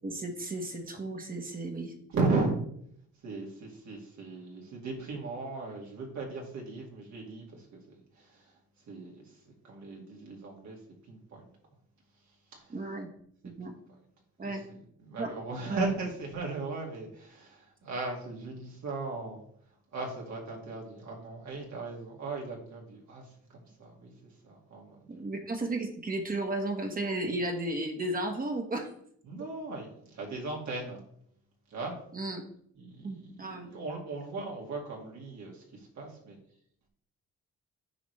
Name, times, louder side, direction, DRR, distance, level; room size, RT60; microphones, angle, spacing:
voice 1, 0.0-1.9 12.7-13.1 13.4-13.7 14.4-14.6 15.2-15.3 15.7-15.8 25.1-28.9 32.1-32.4 33.0-33.7, right 2 dB, 30° right, 3 dB, 1.4 m, -34 dB
voice 2, 2.1-2.6 3.2-7.8 8.1-8.5 8.9-9.4 9.6-10.8 11.1-11.4 12.5-12.8 13.7-13.8 14.4-14.6 15.0-19.4 19.9-24.1 24.4-25.2 29.2-31.0 31.7-32.0 32.8-36.4, right 3 dB, 65° right, -1 dB, 2.3 m, -37 dB
9.3 x 4.9 x 3.4 m, 0.67 s
cardioid pair, 90°, 30 cm